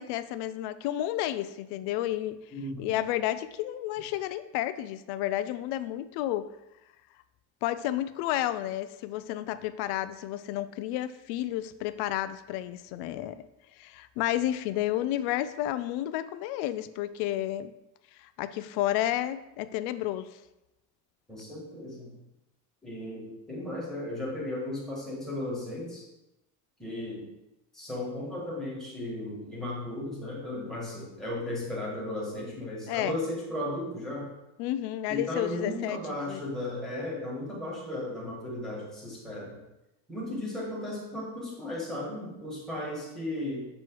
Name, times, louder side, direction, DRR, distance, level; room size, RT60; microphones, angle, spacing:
voice 1, 0.0-2.4 2.8-6.5 7.6-13.4 13.8-17.7 18.1-20.4 32.9-33.2 34.6-36.4, left 13 dB, 85° left, 13 dB, 0.5 m, -31 dB
voice 2, 2.5-3.0 21.3-22.1 22.8-26.1 26.8-27.3 27.7-34.3 35.1-39.6 40.1-43.7, left 1 dB, ahead, -5 dB, 1.6 m, -35 dB
7.5 x 3.1 x 4.6 m, 0.93 s
cardioid pair, 175°, 38 cm